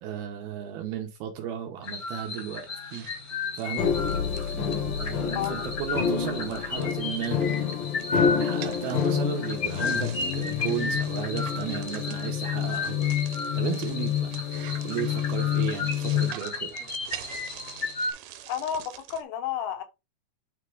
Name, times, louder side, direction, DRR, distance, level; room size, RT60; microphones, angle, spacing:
voice 1, 0.0-3.1 3.6-3.9 4.5-7.4 8.1-13.1 13.6-14.3 14.8-16.8, right 9 dB, 75° right, 2.5 m, -34 dB
sound 1, 1.8-18.1, left 3 dB, 50° left, 1.0 m, -34 dB
sound 2, 2.9-5.5 5.9-6.1 6.4-19.2, right 13 dB, 90° right, 2.9 m, -46 dB
sound 3, 3.8-16.3, left 8 dB, 75° left, 2.0 m, -28 dB
voice 2, 5.4-5.7 18.5-19.8, left 9 dB, 90° left, 3.5 m, -31 dB
9.3 x 3.6 x 3.3 m
omnidirectional pair, 5.1 m